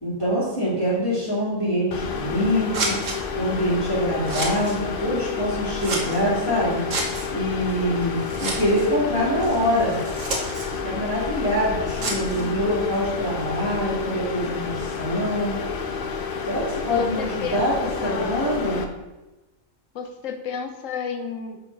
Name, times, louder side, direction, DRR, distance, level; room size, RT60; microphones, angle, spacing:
voice 1, 0.0-2.9 3.3-6.8 7.3-10.0 10.8-15.6 16.5-17.7 18.0-18.8, equal, 20° left, -11 dB, 2.2 m, -24 dB
sound 1, 1.9-18.8, left 6 dB, 55° left, 0.7 m, -30 dB
Scissors, 2.0-13.4, right 2 dB, 65° right, 1.5 m, -34 dB
voice 2, 12.0-12.9 16.9-17.7 18.0-18.4 19.9-21.6, left 6 dB, 70° left, 6 dB, 1.1 m, -33 dB
6.5 x 4.3 x 4.5 m, 1.1 s
omnidirectional pair, 1.4 m